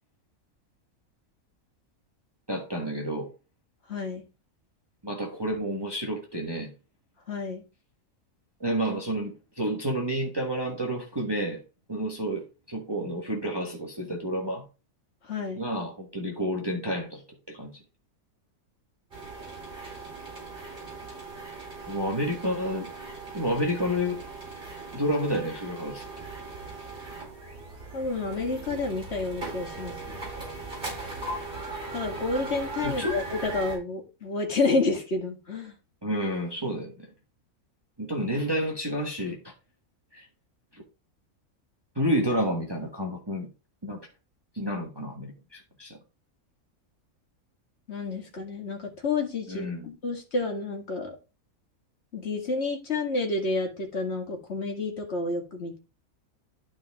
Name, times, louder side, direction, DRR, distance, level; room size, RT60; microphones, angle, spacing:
voice 1, 2.5-3.3 5.0-6.7 8.6-11.6 11.9-14.6 15.6-17.2 17.5-17.7 21.9-22.9 23.3-24.2 24.9-26.0 32.8-33.2 36.0-36.9 38.0-39.5 40.1-40.2 41.9-43.5 43.8-44.0 44.5-46.0 49.5-49.9, equal, 15° right, 1.4 m, -30 dB
voice 2, 3.9-4.2 7.3-7.6 15.3-15.7 27.9-30.2 31.9-35.7 47.9-51.2 52.1-55.8, left 3 dB, 45° left, 2.2 m, -30 dB
sound 1, 19.1-33.8, right 3 dB, 35° right, 4.4 m, -39 dB
12.0 x 4.4 x 3.6 m
omnidirectional pair, 1.5 m